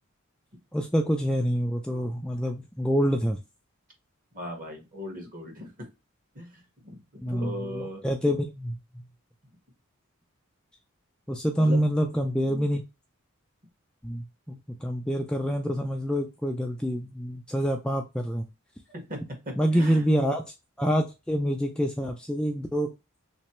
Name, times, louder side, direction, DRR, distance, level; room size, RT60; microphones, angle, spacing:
voice 1, 0.7-3.4 7.2-8.8 11.3-12.8 14.0-18.4 19.6-20.4 20.8-22.9, equal, 5° left, 2 dB, 0.3 m, -26 dB
voice 2, 4.3-5.9 6.3-8.0 11.6-11.8 18.9-20.1, left 1 dB, 40° right, 2 dB, 1.4 m, -39 dB
3.3 x 3.1 x 2.9 m, 0.25 s
head